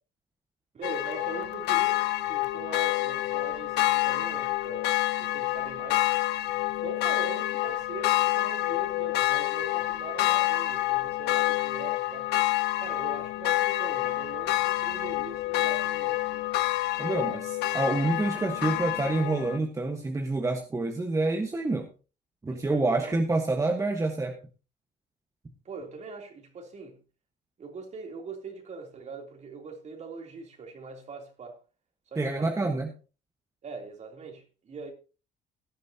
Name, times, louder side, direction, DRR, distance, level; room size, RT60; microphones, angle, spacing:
voice 1, 0.7-6.1 6.8-12.4 12.8-16.5 22.5-23.2 25.7-27.0 27.6-31.6 32.1-32.7 33.6-34.9, right 4 dB, 40° right, 3.3 m, -42 dB
sound 1, 0.8-19.6, left 17 dB, 80° left, 1.0 m, -28 dB
voice 2, 17.0-21.9 22.4-24.3 32.2-32.9, right 2 dB, 20° right, 1.4 m, -27 dB
17.0 x 10.5 x 2.9 m
cardioid pair, 110°, 17 cm